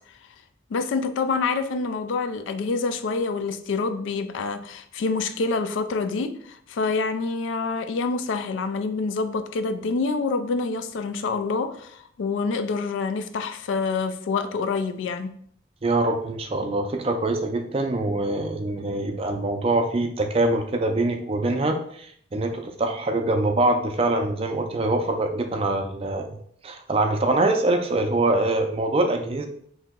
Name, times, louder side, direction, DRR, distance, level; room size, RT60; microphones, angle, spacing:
voice 1, 0.7-15.3, left 4 dB, 85° left, 10 dB, 0.3 m, -27 dB
voice 2, 15.8-26.4 26.6-29.5, right 2 dB, 30° right, 5 dB, 0.4 m, -24 dB
2.9 x 2.7 x 3.5 m, 0.63 s
head